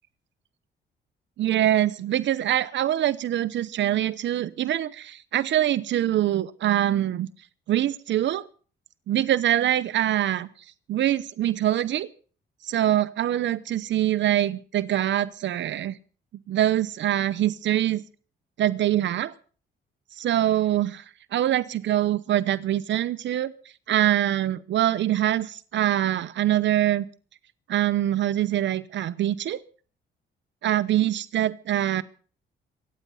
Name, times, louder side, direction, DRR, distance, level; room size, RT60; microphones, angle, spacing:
voice 1, 1.4-7.3 7.7-8.4 9.1-10.5 10.9-12.1 12.6-16.0 16.5-18.0 18.6-19.3 20.2-21.0 21.3-23.5 23.9-27.0 27.7-29.6 30.6-32.0, right 12 dB, 65° right, 17 dB, 0.8 m, -24 dB
24.5 x 9.4 x 5.6 m, 0.41 s
cardioid pair, 90°, 20 cm